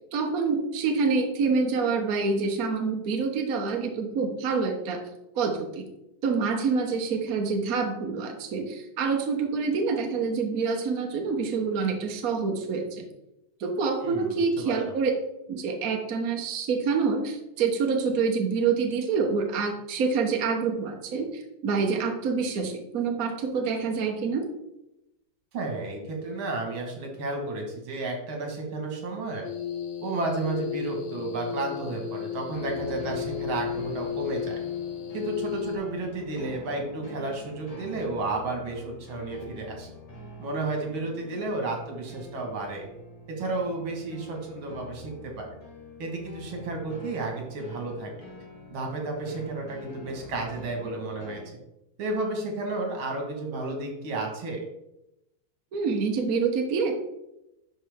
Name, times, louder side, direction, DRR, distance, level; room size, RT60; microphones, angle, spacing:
voice 1, 0.1-5.0 5.4-5.8 6.2-13.0 13.6-15.1 15.5-24.5 55.7-57.0, right 5 dB, 50° right, 3 dB, 1.3 m, -27 dB
voice 2, 14.0-14.9 25.5-29.5 30.0-34.6 35.1-39.9 40.4-42.9 43.3-45.5 46.0-48.1 48.7-51.4 52.0-54.6, right 2 dB, 80° right, 1 dB, 2.4 m, -32 dB
sound 1, 29.4-35.8, left 9 dB, 60° left, 1.5 m, -34 dB
sound 2, 32.5-51.5, left 3 dB, 25° left, 0.8 m, -45 dB
11.5 x 4.4 x 3.5 m, 0.88 s
omnidirectional pair, 2.2 m